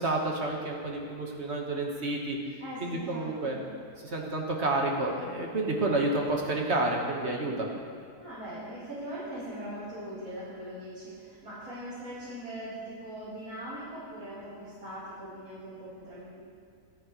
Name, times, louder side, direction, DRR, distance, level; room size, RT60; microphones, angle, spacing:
voice 1, 0.0-2.4 2.8-3.6 4.0-7.5, right 2 dB, 45° right, 0 dB, 1.8 m, -29 dB
voice 2, 2.6-3.6 7.2-7.7 8.2-16.4, equal, 65° right, -13 dB, 4.4 m, -41 dB
25.0 x 9.1 x 3.2 m, 2.2 s
omnidirectional pair, 1.6 m